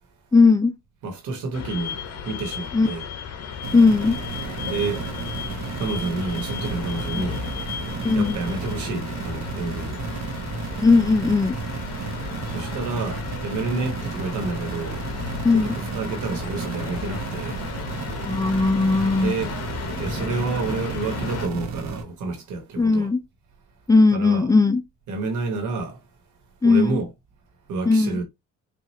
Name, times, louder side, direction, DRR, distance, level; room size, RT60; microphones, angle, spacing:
voice 1, 0.3-0.7 2.7-2.9 3.7-4.2 8.0-8.4 10.8-11.6 15.4-15.8 18.3-19.3 22.8-23.2 23.9-24.8 26.6-27.0 27.9-28.2, left 3 dB, 10° left, 0.5 m, -18 dB
voice 2, 1.0-3.1 4.6-5.0 5.8-7.5 8.1-10.0 12.5-15.1 15.5-17.6 19.2-19.5 20.0-23.1 24.1-24.5 25.1-26.0 26.6-27.1 27.7-28.2, right 3 dB, 80° right, 1.4 m, -29 dB
sound 1, 1.5-21.5, left 7 dB, 55° left, 0.9 m, -34 dB
sound 2, 3.6-22.0, right 5 dB, 65° right, 0.9 m, -33 dB
4.6 x 2.5 x 2.8 m
cardioid pair, 90°, 30 cm